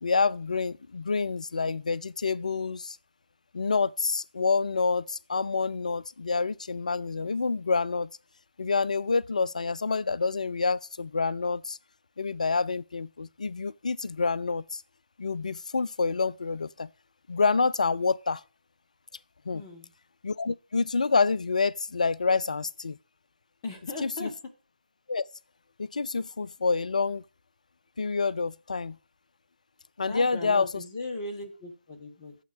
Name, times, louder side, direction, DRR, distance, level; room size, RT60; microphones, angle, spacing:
voice 1, 0.0-3.0 3.5-8.1 8.6-11.8 12.2-14.8 15.2-16.9 17.3-18.4 19.5-19.6 20.2-23.0 24.0-24.3 25.1-25.2 25.8-27.2 28.0-29.0 30.0-30.7, left 4 dB, 45° left, 0.3 m, -27 dB
voice 2, 19.5-19.9 23.6-24.3 30.1-32.4, left 2 dB, 20° left, 1.2 m, -38 dB
7.3 x 5.8 x 6.7 m
figure-of-eight pair, 150°, 5 cm